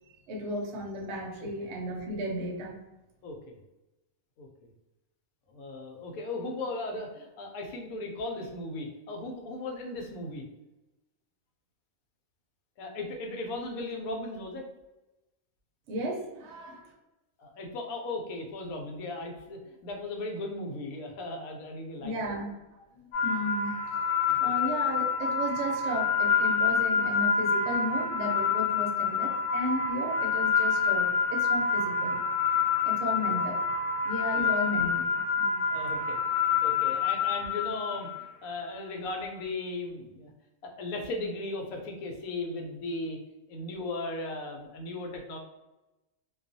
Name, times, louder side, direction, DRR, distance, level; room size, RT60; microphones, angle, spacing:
voice 1, 0.3-2.8 15.9-16.9 22.0-24.0 24.3-32.3 32.8-33.7 34.0-35.1 35.4-35.8, equal, 65° right, -1 dB, 0.8 m, -34 dB
voice 2, 3.2-3.5 4.4-4.5 5.5-10.4 12.8-14.7 17.4-22.3 24.3-24.5 33.2-33.4 34.3-34.5 35.7-40.3 40.6-43.2 43.5-45.4, left 2 dB, 80° left, 2 dB, 1.0 m, -37 dB
sound 1, 23.1-38.2, left 6 dB, 50° left, 0.7 m, -27 dB
2.3 x 2.3 x 2.5 m, 0.99 s
omnidirectional pair, 1.5 m